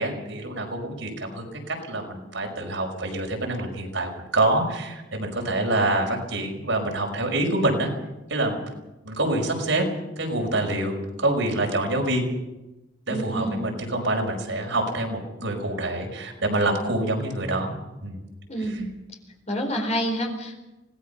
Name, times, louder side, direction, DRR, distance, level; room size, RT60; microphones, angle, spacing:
voice 1, 0.0-7.9 8.3-8.6 9.0-9.8 10.2-12.2 13.1-17.8 18.0-18.2 18.6-18.8, right 2 dB, 70° right, 2 dB, 5.5 m, -26 dB
voice 2, 13.1-13.6 18.5-18.9 19.5-20.6, equal, 35° left, 4 dB, 4.4 m, -28 dB
25.5 x 19.0 x 5.6 m, 1.0 s
head